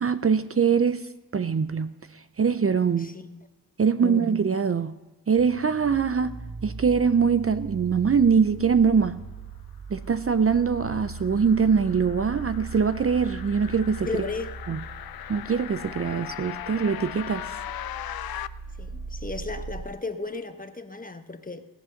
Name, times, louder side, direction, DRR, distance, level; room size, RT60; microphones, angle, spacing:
voice 1, 0.0-3.1 3.8-4.9 5.3-9.2 9.9-14.2 14.7-14.8 15.3-17.5, right 6 dB, 40° right, 12 dB, 0.6 m, -23 dB
voice 2, 3.0-3.5 4.0-4.3 14.1-14.5 18.8-21.7, left 3 dB, 25° left, 8 dB, 1.2 m, -35 dB
sound 1, 5.4-19.8, right 4 dB, 70° right, 2.2 m, -40 dB
sound 2, 10.1-18.5, left 12 dB, 80° left, 0.5 m, -39 dB
17.5 x 7.6 x 6.5 m, 1.2 s
cardioid pair, 55°, 36 cm